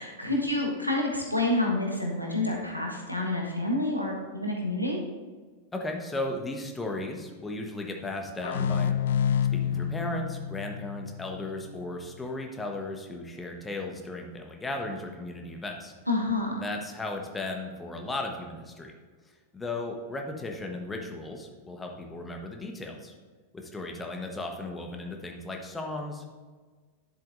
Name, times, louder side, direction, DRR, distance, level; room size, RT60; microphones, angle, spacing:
voice 1, 0.0-5.0 16.1-16.6, left 2 dB, 90° left, -1 dB, 1.4 m, -28 dB
voice 2, 5.7-8.9 9.5-15.9 16.6-18.9 19.5-23.1 23.5-26.4, left 2 dB, 10° left, 2 dB, 1.1 m, -36 dB
sound 1, 8.4-11.9, left 8 dB, 60° left, 0.4 m, -29 dB
10.5 x 7.5 x 2.6 m, 1.4 s
figure-of-eight pair, 90°, 0 cm